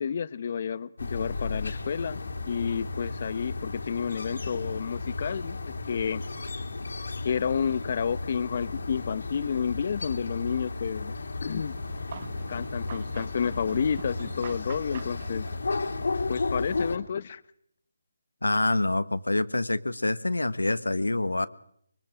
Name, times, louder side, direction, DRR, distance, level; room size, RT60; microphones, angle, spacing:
voice 1, 0.0-2.2 2.5-6.2 7.2-11.1 11.4-11.8 12.5-15.5 16.3-17.4, left 7 dB, 45° left, 16 dB, 0.9 m, -30 dB
sound 1, 1.0-17.0, left 3 dB, 70° left, 2.7 m, -34 dB
sound 2, 11.5-16.2, right 7 dB, 40° right, 0.8 m, -46 dB
voice 2, 18.4-21.5, left 2 dB, 90° left, 13 dB, 1.4 m, -26 dB
25.5 x 23.0 x 5.0 m, 0.68 s
figure-of-eight pair, 155°, 0 cm